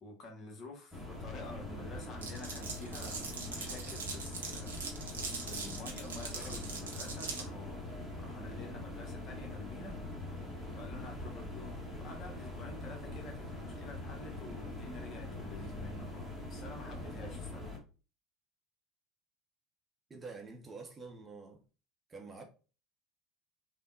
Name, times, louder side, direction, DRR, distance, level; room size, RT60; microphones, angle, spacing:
voice 1, 0.0-10.0 10.7-17.7, left 2 dB, 40° left, 0.9 m, -49 dB
sound 1, 0.9-17.8, left 2 dB, ahead, 1.0 m, -43 dB
Glass, 2.2-7.5, right 4 dB, 75° right, 0.6 m, -41 dB
voice 2, 20.1-21.6 22.1-22.4, right 4 dB, 20° right, 0.7 m, -47 dB
3.3 x 2.1 x 2.6 m
figure-of-eight pair, 70°, 0 cm